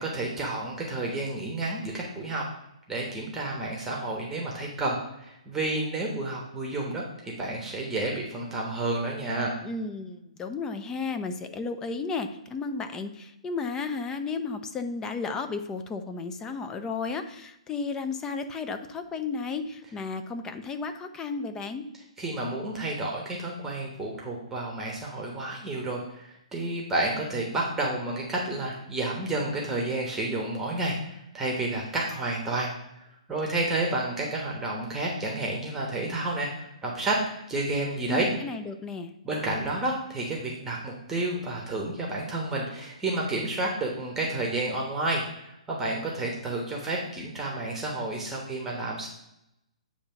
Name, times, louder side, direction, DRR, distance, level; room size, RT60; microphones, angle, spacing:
voice 1, 0.0-2.4 2.9-9.5 22.2-32.7 33.3-38.3 39.2-49.1, right 2 dB, 10° right, -1 dB, 1.1 m, -30 dB
voice 2, 9.6-21.8 38.1-39.1, left 4 dB, 15° left, 7 dB, 0.5 m, -33 dB
8.7 x 2.9 x 5.6 m, 0.84 s
hypercardioid pair, 135°, 4 cm